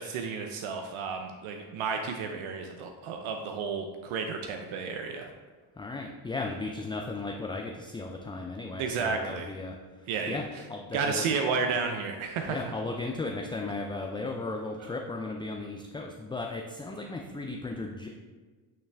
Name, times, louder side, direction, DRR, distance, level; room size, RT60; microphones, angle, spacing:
voice 1, 0.0-5.3 8.8-9.5 10.1-10.6 10.9-12.6 14.8-14.9, right 5 dB, 75° right, 4 dB, 0.7 m, -32 dB
voice 2, 5.8-9.8 10.3-10.4 10.7-11.2 12.5-18.1, left 3 dB, 10° left, 1 dB, 0.3 m, -35 dB
9.0 x 3.3 x 3.3 m, 1.4 s
supercardioid pair, 75°, 49 cm